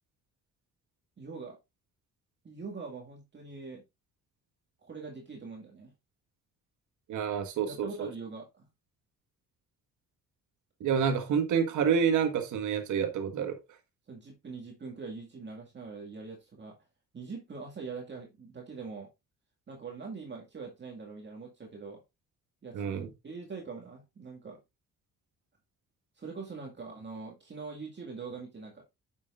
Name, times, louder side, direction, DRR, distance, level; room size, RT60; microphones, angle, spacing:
voice 1, 1.2-1.6 2.4-3.8 4.8-5.9 7.7-8.7 14.1-16.8 17.1-19.1 19.7-22.0 22.6-24.6 26.1-28.8, right 4 dB, 35° right, 2.1 m, -43 dB
voice 2, 7.1-8.1 10.8-13.6 22.7-23.1, right 7 dB, 80° right, 1.6 m, -28 dB
8.8 x 6.4 x 2.5 m
cardioid pair, 90°, 30 cm